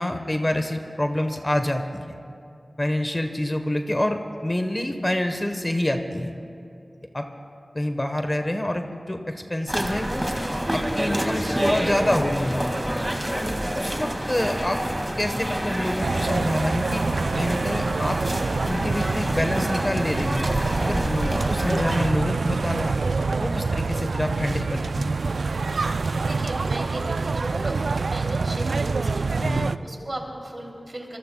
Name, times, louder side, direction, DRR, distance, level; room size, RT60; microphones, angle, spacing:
voice 1, 0.0-2.1 2.8-6.3 7.1-7.3 7.7-10.3 10.7-12.7 13.5-14.8 15.2-17.0 17.4-18.2 18.7-20.4 20.8-23.0 23.4-25.1 29.4-29.7, left 1 dB, 25° left, 6 dB, 1.0 m, -27 dB
sound 1, 9.7-22.1, right 1 dB, 15° right, 1.9 m, -28 dB
voice 2, 13.5-14.0 25.6-31.2, right 1 dB, 40° right, 0 dB, 2.8 m, -38 dB
sound 2, 16.0-29.8, right 4 dB, 85° right, 0.3 m, -26 dB
25.5 x 22.0 x 2.2 m, 2.7 s
wide cardioid pair, 55°, 0 cm